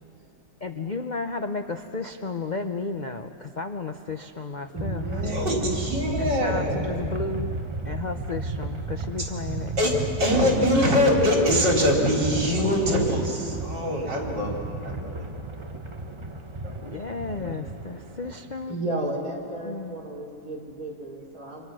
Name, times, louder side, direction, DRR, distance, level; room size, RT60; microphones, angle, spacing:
voice 1, 0.6-5.3 6.2-9.7 10.6-11.7 16.8-18.8 19.6-20.0, left 4 dB, 55° left, 7 dB, 0.4 m, -33 dB
voice 2, 4.7-5.9 18.7-21.7, right 1 dB, 50° right, -3 dB, 4.4 m, -33 dB
sound 1, 4.8-18.7, right 2 dB, 25° right, 0.7 m, -33 dB
voice 3, 5.2-7.0 9.8-14.6 14.8-15.3 16.6-16.9 17.3-17.6, left 1 dB, 70° right, -2 dB, 5.0 m, -24 dB
29.0 x 26.5 x 6.3 m, 2.7 s
omnidirectional pair, 2.0 m